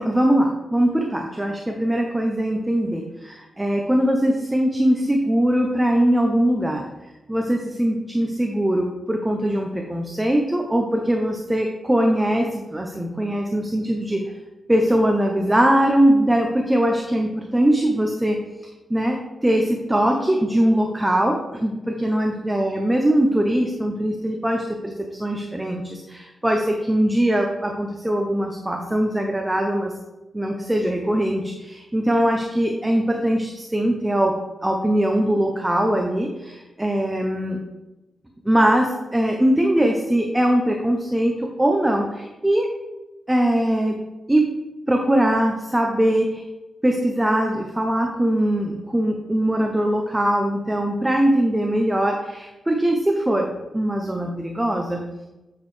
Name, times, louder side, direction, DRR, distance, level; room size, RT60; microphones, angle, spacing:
voice 1, 0.0-6.9 7.3-14.3 14.7-18.4 18.9-29.9 30.3-37.6 38.5-42.7 43.3-44.0 44.3-44.6 44.9-46.4 46.8-55.0, right 1 dB, 10° right, 2 dB, 0.6 m, -21 dB
7.5 x 6.1 x 3.2 m, 1.0 s
wide cardioid pair, 145°, 0 cm